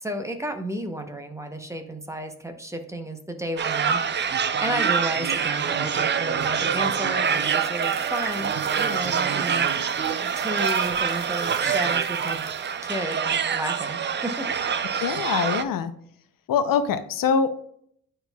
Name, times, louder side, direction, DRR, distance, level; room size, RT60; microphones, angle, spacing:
voice 1, 0.0-9.7 10.4-12.4 12.8-14.8, right 1 dB, 10° right, 6 dB, 0.7 m, -33 dB
sound 1, 3.6-15.6, right 7 dB, 35° right, 0.4 m, -25 dB
sound 2, 7.2-13.0, right 7 dB, 70° right, 0.9 m, -46 dB
voice 2, 14.9-15.9 16.5-17.5, left 6 dB, 75° left, 11 dB, 0.6 m, -23 dB
10.0 x 4.4 x 2.3 m, 0.66 s
cardioid pair, 120°, 33 cm